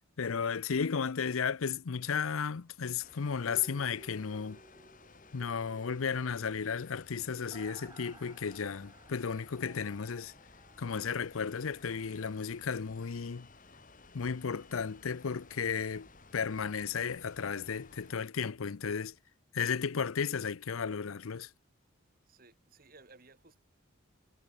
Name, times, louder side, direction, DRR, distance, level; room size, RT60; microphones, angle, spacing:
voice 1, 0.2-4.6 5.3-10.3 10.8-13.5 14.1-19.1 19.5-21.5, left 6 dB, 80° left, 0.6 m, -34 dB
sound 1, 3.0-18.2, left 3 dB, 40° left, 3.3 m, -57 dB
sound 2, 3.4-11.3 11.6-11.7, right 2 dB, 20° right, 1.6 m, -57 dB
voice 2, 22.3-23.6, right 3 dB, 45° right, 2.3 m, -58 dB
head